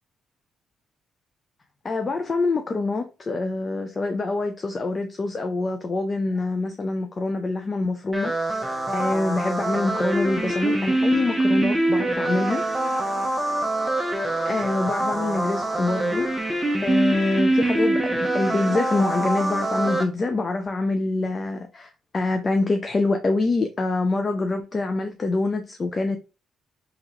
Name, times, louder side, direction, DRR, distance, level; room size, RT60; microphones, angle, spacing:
voice 1, 1.8-8.3 8.9-12.6 14.1-16.2 16.8-26.2, left 3 dB, 35° left, 0.5 m, -25 dB
sound 1, 8.1-20.0, right 1 dB, 10° right, 0.9 m, -24 dB
3.6 x 3.4 x 3.1 m
cardioid pair, 90°, 0 cm